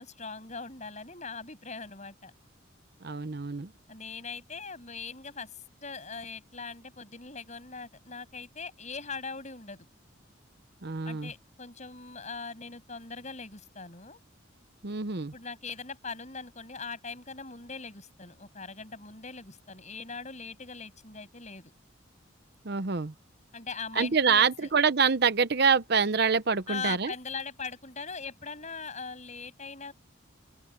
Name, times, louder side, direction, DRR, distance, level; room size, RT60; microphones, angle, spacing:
voice 1, 0.0-2.3 3.9-5.5 5.8-9.9 11.0-14.2 15.3-21.7 23.5-24.7 26.7-29.9, left 4 dB, 35° left, 7.7 m, -41 dB
voice 2, 3.0-3.7 10.8-11.3 14.8-15.3 22.6-23.1 23.9-27.1, right 5 dB, 50° right, 0.8 m, -26 dB
head